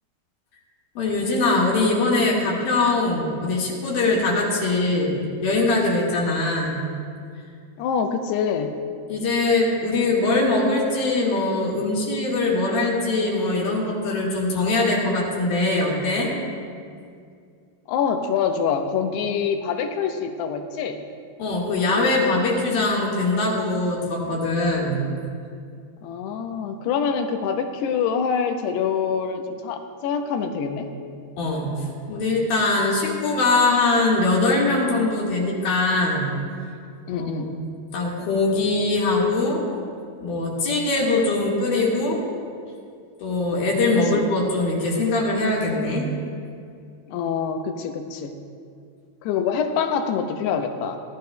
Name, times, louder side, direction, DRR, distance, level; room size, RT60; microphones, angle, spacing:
voice 1, 0.9-6.8 9.1-16.3 21.4-25.0 31.4-36.3 37.1-37.7 37.9-39.6 40.2-42.2 43.2-46.1, left 2 dB, 65° left, -4 dB, 3.4 m, -22 dB
voice 2, 7.8-8.7 17.9-21.0 26.0-30.9 37.1-37.5 47.1-48.4 49.2-51.0, left 6 dB, 90° left, 6 dB, 2.8 m, -25 dB
18.5 x 12.5 x 2.3 m, 2.3 s
omnidirectional pair, 4.7 m